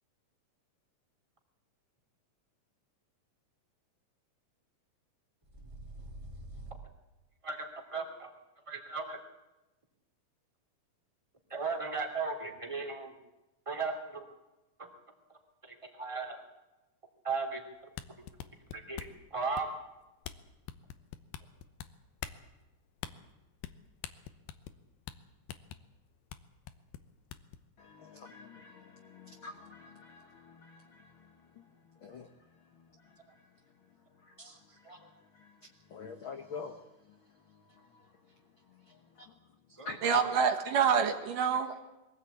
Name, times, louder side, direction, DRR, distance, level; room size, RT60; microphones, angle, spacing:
voice 1, 5.5-6.8 7.4-8.4 8.7-9.2 11.5-13.2 13.6-14.2 14.8-14.9 15.3-16.4 17.2-18.2 18.7-19.7 33.2-33.3 34.4-35.1 39.7-40.4, right 4 dB, 10° right, 2 dB, 2.4 m, -38 dB
sound 1, 17.8-19.2 19.6-19.9 20.2-20.4 20.7-21.9 22.2-22.4 23.0-23.1 23.6-23.8 24.0-24.8 25.1-25.2 25.5-25.8 26.3-26.4 26.7-27.6, left 11 dB, 85° left, 2.7 m, -42 dB
voice 2, 27.8-31.3 31.6-31.7 32.0-32.3 34.3-34.5 35.4-35.5 35.9-36.8 38.9-39.3 39.8-40.0, left 4 dB, 65° left, 5 dB, 1.2 m, -47 dB
voice 3, 40.0-41.9, right 6 dB, 70° right, 5 dB, 3.1 m, -27 dB
23.0 x 16.5 x 8.3 m, 1.0 s
omnidirectional pair, 4.1 m